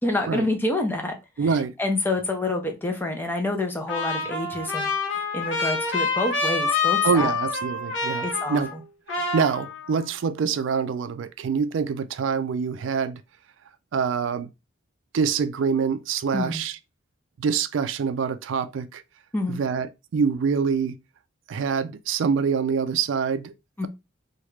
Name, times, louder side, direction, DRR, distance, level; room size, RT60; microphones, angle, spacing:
voice 1, 0.0-1.1 1.4-1.5 1.8-7.3 8.2-8.8 16.3-16.6 19.3-19.6 23.8-23.9, left 2 dB, 10° left, 0.5 m, -27 dB
voice 2, 1.4-1.7 7.0-8.7 9.1-13.2 13.9-14.5 15.1-16.8 17.4-19.0 19.5-21.0 21.5-23.5, right 6 dB, 65° right, 0.3 m, -25 dB
Trumpet, 3.9-8.8 9.1-10.1, left 4 dB, 65° left, 0.8 m, -27 dB
3.1 x 2.3 x 3.1 m
head